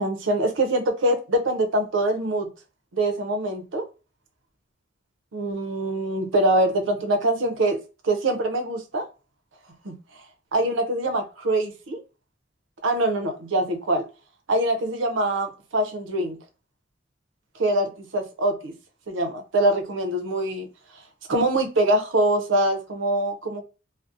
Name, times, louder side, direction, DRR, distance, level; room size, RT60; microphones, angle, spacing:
voice 1, 0.0-2.5 2.9-3.8 5.3-7.8 8.0-9.0 9.8-9.9 10.5-12.0 12.8-14.1 14.5-16.4 17.5-18.7 19.1-20.7 21.3-23.6, right 1 dB, 75° right, 0.6 m, -24 dB
2.6 x 2.0 x 2.4 m
head